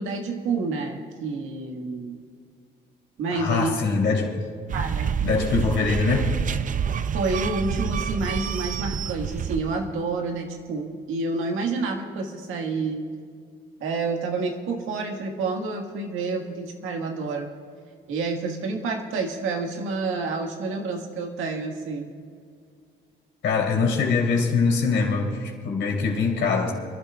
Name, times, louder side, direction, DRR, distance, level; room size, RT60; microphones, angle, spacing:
voice 1, 0.0-2.2 3.2-3.7 4.7-5.1 7.1-13.0 13.8-17.5 18.1-22.1, right 3 dB, 90° right, 2 dB, 1.7 m, -29 dB
voice 2, 3.3-4.4 5.2-6.4 23.4-26.7, left 4 dB, 70° left, 0 dB, 3.1 m, -23 dB
sound 1, 4.7-10.0, right 7 dB, 40° right, 0.5 m, -28 dB
30.0 x 12.5 x 2.4 m, 2.1 s
cardioid pair, 90°, 20 cm